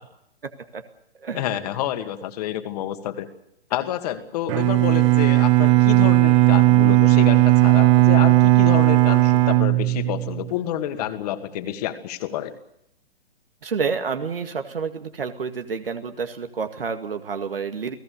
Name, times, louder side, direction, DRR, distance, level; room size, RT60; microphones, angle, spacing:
voice 1, 0.4-0.8 1.2-1.5 13.6-17.9, right 5 dB, 65° right, 7 dB, 2.1 m, -29 dB
voice 2, 1.3-3.3 3.7-12.5, left 12 dB, 40° left, 8 dB, 2.4 m, -28 dB
Bowed string instrument, 4.5-10.5, right 19 dB, 30° right, 1.1 m, -16 dB
29.5 x 17.5 x 6.8 m, 0.76 s
figure-of-eight pair, 115°, 30 cm